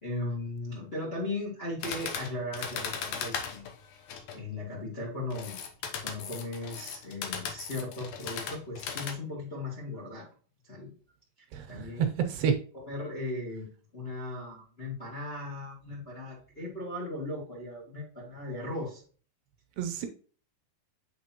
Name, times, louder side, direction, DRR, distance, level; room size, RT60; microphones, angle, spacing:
voice 1, 0.0-3.6 4.3-5.6 6.0-10.3 10.6-10.9 11.4-12.1 12.9-19.0, left 2 dB, 30° left, -3 dB, 1.2 m, -37 dB
sound 1, 1.8-4.4 5.3-9.1, left 6 dB, 70° left, 2.1 m, -37 dB
voice 2, 11.5-12.6 19.8-20.1, right 7 dB, 80° right, 5 dB, 2.6 m, -29 dB
8.3 x 4.1 x 2.9 m, 0.41 s
omnidirectional pair, 4.2 m